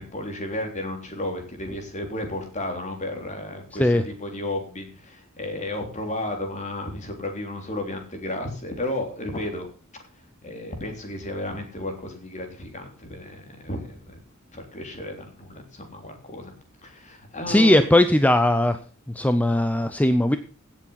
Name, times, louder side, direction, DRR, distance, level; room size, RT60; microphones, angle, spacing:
voice 1, 0.0-9.7 10.4-14.2 14.5-16.5 16.8-17.9, left 1 dB, 35° left, 4 dB, 3.6 m, -33 dB
voice 2, 17.5-18.8 19.1-20.4, left 1 dB, 5° left, 10 dB, 0.6 m, -19 dB
16.5 x 7.4 x 5.7 m, 0.39 s
head